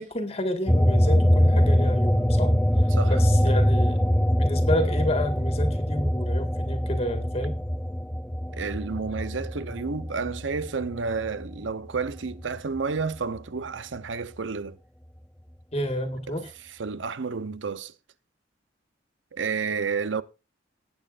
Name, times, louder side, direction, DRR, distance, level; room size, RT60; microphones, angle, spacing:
voice 1, 0.0-2.5 3.1-4.0 4.4-7.6 15.7-16.5, left 1 dB, 35° left, 1.7 m, -30 dB
sound 1, 0.7-11.6 12.0-13.4, equal, 5° left, 0.4 m, -23 dB
voice 2, 8.5-14.8 16.3-16.4 16.6-17.9 19.3-20.2, right 5 dB, 85° right, 0.8 m, -31 dB
19.0 x 8.9 x 2.5 m
head